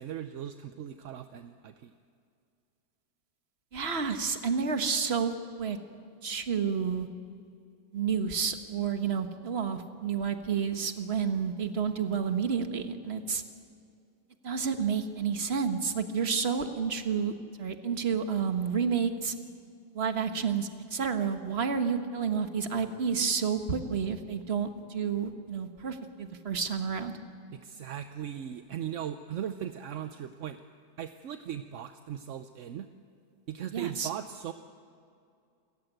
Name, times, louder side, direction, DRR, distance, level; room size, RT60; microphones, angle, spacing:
voice 1, 0.0-1.9 27.5-30.6 31.0-32.9 33.5-34.5, right 10 dB, 60° right, 9 dB, 0.9 m, -38 dB
voice 2, 3.7-5.3 5.6-5.8 6.2-7.1 7.9-13.4 14.4-19.3 19.9-27.1 33.7-34.1, right 6 dB, 40° right, 7 dB, 1.4 m, -30 dB
28.0 x 14.5 x 9.1 m, 2.4 s
omnidirectional pair, 1.8 m